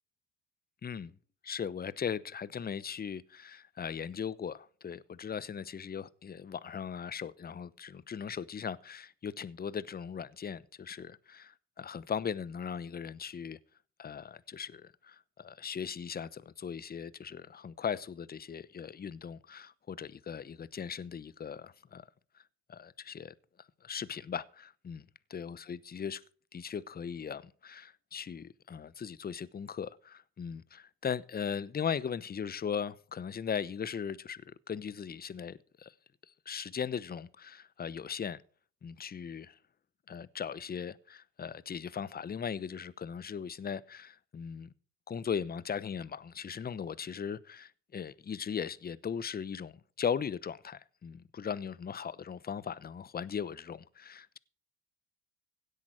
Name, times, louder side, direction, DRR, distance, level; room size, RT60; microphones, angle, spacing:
voice 1, 0.8-1.1 1.4-11.5 11.8-13.6 14.0-22.0 22.7-23.3 23.8-25.0 25.3-26.2 26.5-35.9 36.5-38.4 38.8-39.5 40.1-44.7 45.1-54.4, left 7 dB, 25° left, 0.8 m, -38 dB
17.0 x 8.5 x 4.8 m
hypercardioid pair, 70°, 40 cm